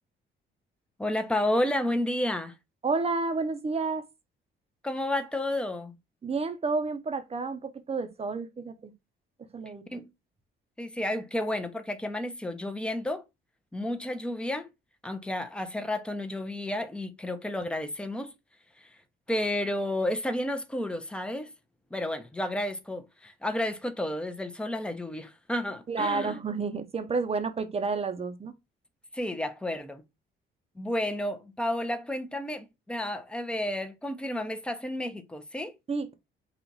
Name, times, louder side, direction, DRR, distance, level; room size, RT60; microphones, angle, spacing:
voice 1, 1.0-2.5 4.8-6.0 9.9-10.1 10.8-13.2 13.7-14.7 15.0-18.3 19.3-21.5 21.9-26.4 29.1-30.0 30.8-35.8, left 1 dB, 5° left, 0.7 m, -31 dB
voice 2, 2.8-4.1 6.2-8.9 9.5-9.8 25.9-28.5 35.9-36.1, right 4 dB, 30° right, 0.8 m, -30 dB
4.0 x 2.4 x 4.5 m
cardioid pair, 90°, 20 cm